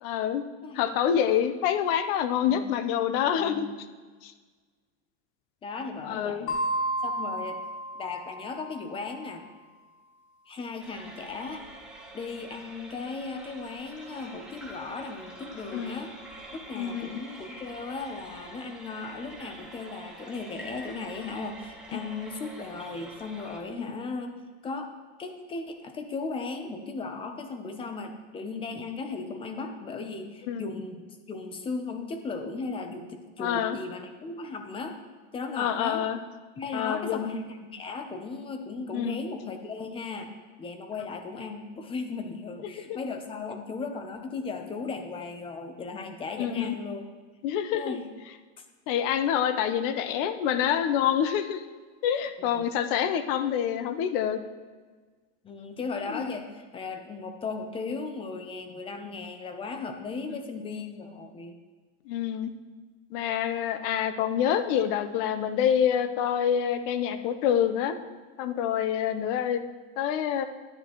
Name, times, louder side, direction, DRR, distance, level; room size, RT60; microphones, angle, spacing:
voice 1, 0.0-0.4 0.7-3.7 4.2-4.3 6.1-6.5 15.7-16.0 16.7-17.2 23.8-23.9 30.5-30.7 33.4-33.8 35.6-36.2 36.7-37.3 38.9-39.2 42.8-43.0 46.4-46.7 47.4-48.0 48.9-51.6 52.0-54.4 56.1-56.2 62.1-62.5 63.1-68.0 68.4-69.6 70.0-70.4, left 9 dB, 50° left, 10 dB, 0.7 m, -27 dB
voice 2, 3.4-3.8 5.6-6.6 7.0-7.6 8.0-9.4 10.5-11.6 12.1-16.1 16.5-24.9 25.2-35.0 35.3-36.0 36.6-40.3 40.6-47.1 47.7-48.1 48.6-48.7 52.4-52.7 55.4-61.5, left 4 dB, 15° left, 6 dB, 0.6 m, -36 dB
sound 1, 6.5-9.0, right 1 dB, 65° left, 2.4 m, -32 dB
sound 2, 10.8-23.6, right 1 dB, ahead, 1.1 m, -46 dB
11.0 x 9.7 x 3.0 m, 1.4 s
supercardioid pair, 160°, 35 cm